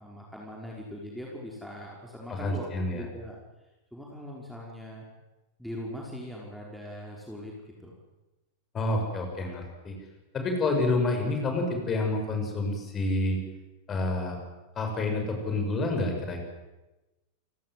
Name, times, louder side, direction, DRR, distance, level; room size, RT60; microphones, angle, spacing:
voice 1, 0.0-2.6 2.9-3.4 3.9-5.1 5.6-8.0, equal, ahead, -3 dB, 5.3 m, -41 dB
voice 2, 2.3-3.0 8.7-10.0 10.3-13.4 13.9-14.4 14.8-16.5, left 2 dB, 25° left, 3 dB, 7.0 m, -28 dB
29.0 x 18.0 x 7.9 m, 1.1 s
figure-of-eight pair, 90°, 0 cm